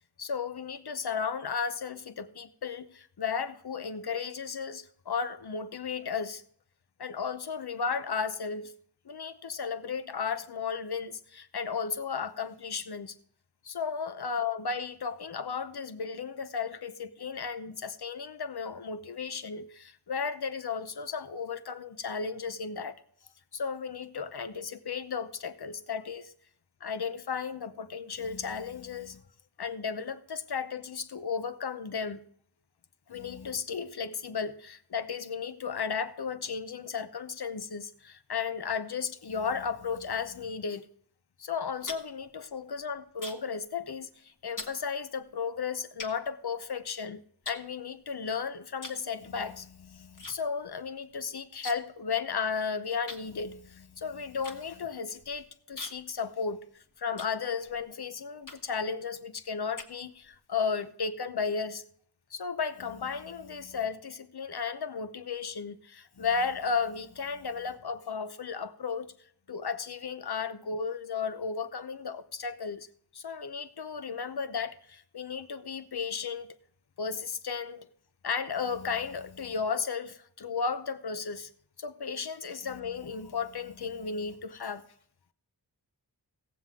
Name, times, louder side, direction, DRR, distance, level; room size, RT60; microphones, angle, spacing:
voice 1, 0.2-6.4 7.0-8.7 9.0-13.2 13.6-23.0 23.5-26.3 26.8-29.2 29.6-32.2 33.1-40.9 41.4-61.8 62.3-69.1 69.5-72.9 73.1-76.5 77.0-77.9 78.2-81.5 81.8-84.9, left 5 dB, 70° left, 0.9 m, -34 dB
sound 1, 41.5-43.6 43.9-44.2 44.6-44.8 45.4-45.5 46.0-47.0 47.4-48.3 48.8-49.1 49.4-50.4 50.6-50.7 51.0-52.0 52.3-52.4 53.1-57.8 58.4-58.8 59.3-60.4, left 3 dB, 50° left, 1.6 m, -44 dB
18.0 x 7.4 x 3.7 m
wide cardioid pair, 60°, 40 cm